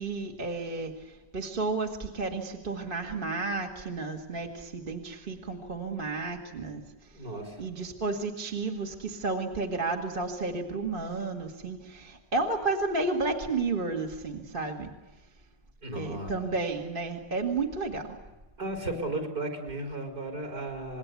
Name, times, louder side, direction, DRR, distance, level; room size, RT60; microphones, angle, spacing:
voice 1, 0.0-7.1 7.6-14.9 16.0-18.2, right 3 dB, 25° right, 2 dB, 1.9 m, -32 dB
voice 2, 7.1-7.6 15.8-16.3 18.6-21.0, right 2 dB, 45° right, 3 dB, 5.1 m, -35 dB
26.5 x 21.5 x 8.3 m, 1.1 s
omnidirectional pair, 2.4 m